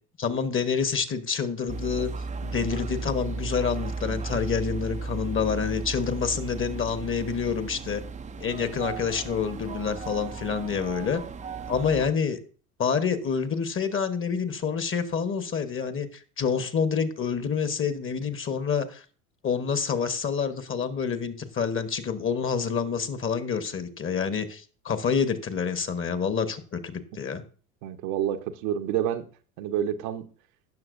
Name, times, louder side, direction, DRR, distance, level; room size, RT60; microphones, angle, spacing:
voice 1, 0.2-2.1 2.4-8.0 8.4-11.2 11.7-12.4 12.8-19.0 19.4-27.4, left 6 dB, 30° left, 1.1 m, -28 dB
sound 1, 1.7-12.1, right 3 dB, 15° right, 0.5 m, -35 dB
voice 2, 27.8-29.3 29.6-30.3, right 10 dB, 65° right, 1.0 m, -28 dB
16.5 x 6.3 x 2.6 m
hypercardioid pair, 75°, 44 cm